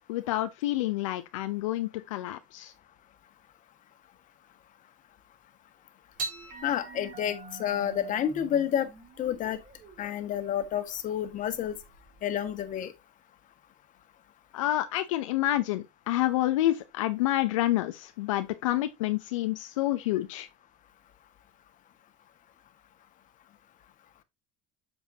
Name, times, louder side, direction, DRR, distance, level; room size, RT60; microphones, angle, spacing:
voice 1, 0.1-2.7 14.5-20.5, left 15 dB, 85° left, 0.8 m, -28 dB
sound 1, 6.2-12.7, right 3 dB, 60° right, 3.8 m, -44 dB
voice 2, 6.6-8.9 9.2-9.6 10.0-11.8 12.2-12.9, left 10 dB, 55° left, 1.7 m, -29 dB
8.0 x 7.2 x 2.8 m
hypercardioid pair, 80°, 16 cm